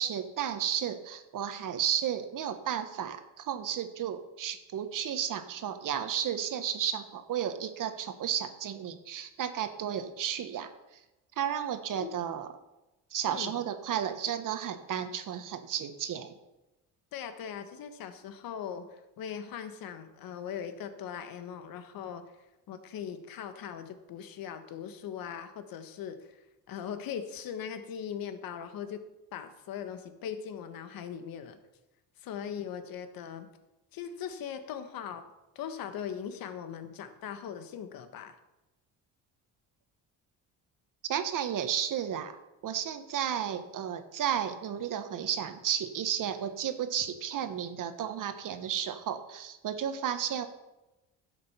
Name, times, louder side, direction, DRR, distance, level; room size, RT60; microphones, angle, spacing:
voice 1, 0.0-10.7 11.4-12.5 13.1-16.3 41.1-42.3 42.6-50.5, right 9 dB, 60° right, 8 dB, 1.4 m, -33 dB
voice 2, 13.3-13.6 17.1-22.3 22.7-29.0 29.3-31.6 32.2-33.5 33.9-35.2 35.5-38.4, left 8 dB, 70° left, 9 dB, 1.4 m, -40 dB
12.0 x 7.6 x 5.8 m, 0.99 s
cardioid pair, 85°, 37 cm